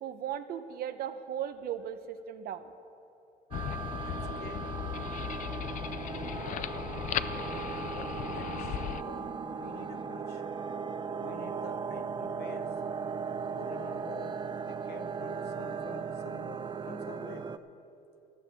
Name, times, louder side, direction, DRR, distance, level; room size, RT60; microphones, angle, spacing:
voice 1, 0.0-2.7, right 9 dB, 65° right, 10 dB, 0.7 m, -37 dB
sound 1, 3.5-9.0, left 11 dB, 50° left, 0.4 m, -37 dB
sound 2, 3.5-17.6, right 6 dB, 25° right, 0.4 m, -37 dB
voice 2, 4.0-4.9 6.4-6.7 7.9-10.4 11.2-12.7 13.5-17.5, left 7 dB, 70° left, 8 dB, 1.0 m, -48 dB
15.0 x 6.8 x 7.9 m, 2.7 s
cardioid pair, 110°, 17 cm